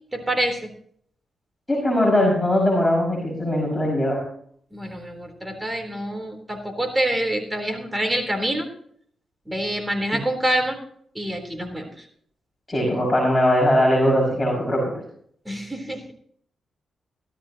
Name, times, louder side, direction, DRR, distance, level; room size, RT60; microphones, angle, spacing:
voice 1, 0.1-0.7 4.7-8.7 9.5-10.8 11.1-12.1 15.5-16.1, right 1 dB, 15° right, 4 dB, 3.8 m, -26 dB
voice 2, 1.7-4.2 12.7-14.8, left 1 dB, 15° left, -3 dB, 6.1 m, -20 dB
17.0 x 13.5 x 3.0 m, 0.62 s
cardioid pair, 70°, 0 cm